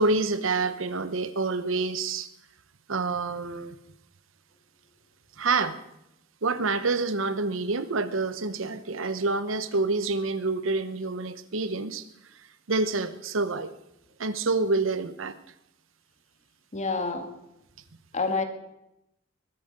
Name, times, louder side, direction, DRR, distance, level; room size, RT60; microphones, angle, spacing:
voice 1, 0.0-2.3 2.9-3.8 5.4-5.8 6.4-12.1 12.7-13.7 14.2-15.4, right 3 dB, 70° right, 13 dB, 0.9 m, -27 dB
voice 2, 16.7-17.3 18.1-18.4, left 3 dB, 35° left, 6 dB, 1.9 m, -27 dB
21.0 x 9.1 x 6.6 m, 0.86 s
head